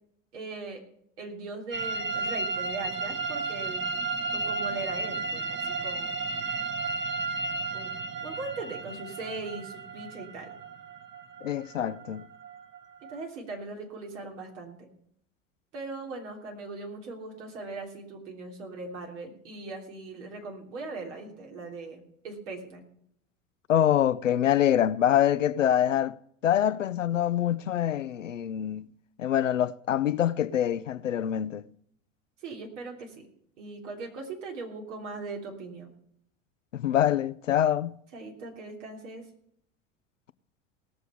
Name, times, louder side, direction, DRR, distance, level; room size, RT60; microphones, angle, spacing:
voice 1, 0.3-0.8 1.2-3.8 4.3-6.2 7.7-7.9 8.2-10.5 13.1-14.9 15.7-22.8 32.4-33.3 33.6-36.0 38.1-39.2, right 3 dB, 70° right, 3.2 m, -39 dB
sound 1, 1.7-13.2, right 3 dB, 30° right, 1.3 m, -33 dB
voice 2, 11.4-12.3 23.7-26.2 26.4-28.9 29.2-31.6 36.7-38.0, left 10 dB, 90° left, 0.5 m, -25 dB
18.0 x 6.8 x 6.9 m
figure-of-eight pair, 75°, 37 cm